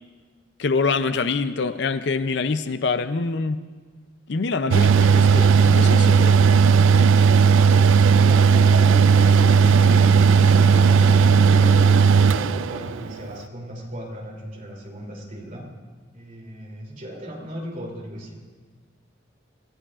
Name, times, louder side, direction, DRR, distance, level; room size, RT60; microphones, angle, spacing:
voice 1, 0.6-3.6 4.3-6.4, left 4 dB, 60° left, 0.5 m, -25 dB
Mechanical fan, 4.7-13.1, right 6 dB, 75° right, 0.3 m, -15 dB
sound 1, 6.2-12.9, equal, 85° left, 1.7 m, -35 dB
voice 2, 8.2-11.4 12.0-15.7 16.1-18.4, equal, 40° right, 3.0 m, -37 dB
26.5 x 15.5 x 2.5 m
head